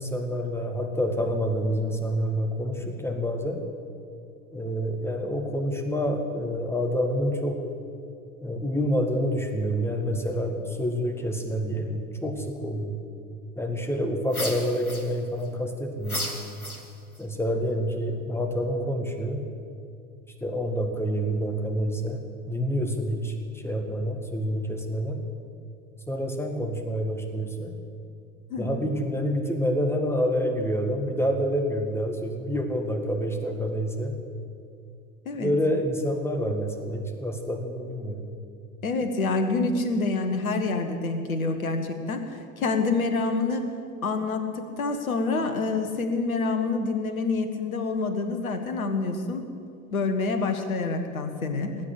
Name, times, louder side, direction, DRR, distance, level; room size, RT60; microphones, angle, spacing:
voice 1, 0.0-3.6 4.5-7.6 8.4-13.0 13.6-16.3 17.2-19.4 20.4-25.2 26.1-27.7 28.6-34.2 35.4-38.3, equal, 5° left, 4 dB, 1.9 m, -28 dB
sound 1, 14.3-15.5 16.0-17.2, left 1 dB, 90° left, 1.3 m, -34 dB
voice 2, 28.5-28.9 35.2-35.5 38.8-43.7 44.0-49.5 49.9-51.8, left 3 dB, 75° left, 7 dB, 1.6 m, -27 dB
19.5 x 8.3 x 8.5 m, 2.5 s
figure-of-eight pair, 75°, 42 cm